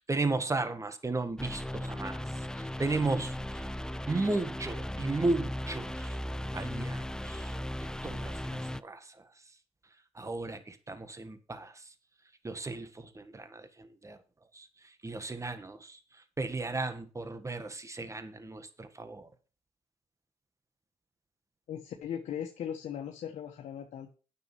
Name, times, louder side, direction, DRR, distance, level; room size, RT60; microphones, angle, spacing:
voice 1, 0.1-2.2 2.8-3.3 4.1-6.1 6.5-7.5 8.0-9.0 10.2-11.7 12.4-13.7 14.0-14.2 14.6-14.7 15.0-16.0 16.4-19.3, right 3 dB, 25° right, 1.7 m, -34 dB
sound 1, 1.4-8.8, left 1 dB, 5° left, 0.5 m, -37 dB
voice 2, 21.7-24.2, left 9 dB, 80° left, 1.4 m, -38 dB
9.5 x 6.9 x 6.1 m
cardioid pair, 70°, 12 cm